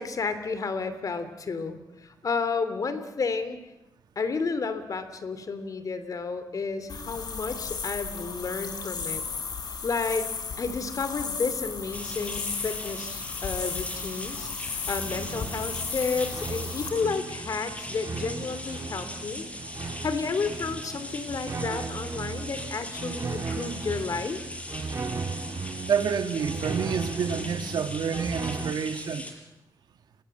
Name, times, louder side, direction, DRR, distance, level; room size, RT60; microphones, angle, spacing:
voice 1, 0.0-3.6 4.2-9.2 9.8-10.3 10.6-19.5 20.0-24.4, left 4 dB, 55° left, 11 dB, 2.9 m, -31 dB
sound 1, 6.9-16.9, left 5 dB, 75° left, 4.9 m, -35 dB
sound 2, 11.9-29.3, left 1 dB, 20° left, 5.3 m, -40 dB
sound 3, 14.9-28.7, right 4 dB, 45° right, 1.8 m, -36 dB
voice 2, 25.8-29.3, right 7 dB, 85° right, 9 dB, 1.8 m, -28 dB
30.0 x 22.5 x 7.8 m, 0.94 s
cardioid pair, 85°, 7 cm